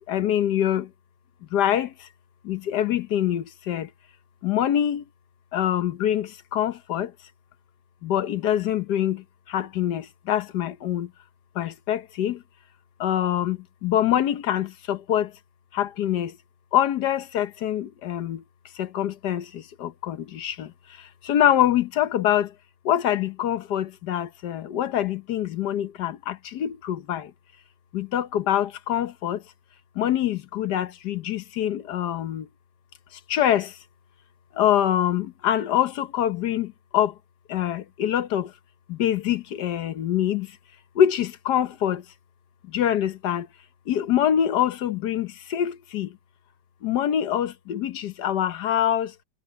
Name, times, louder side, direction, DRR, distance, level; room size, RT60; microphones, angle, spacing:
voice 1, 0.1-0.9 1.5-1.9 2.5-3.9 4.4-5.0 5.5-7.1 8.0-9.2 9.5-11.1 11.6-12.4 13.0-13.6 13.8-15.3 15.8-16.3 16.7-18.4 18.8-19.4 19.8-20.7 21.3-22.5 22.9-27.2 27.9-29.4 30.0-32.4 33.3-33.7 34.6-36.7 36.9-37.1 37.5-38.5 38.9-40.5 41.0-42.0 42.7-43.5 43.9-46.1 46.8-49.1, left 10 dB, 70° left, 1.5 m, -24 dB
omnidirectional pair, 1.9 m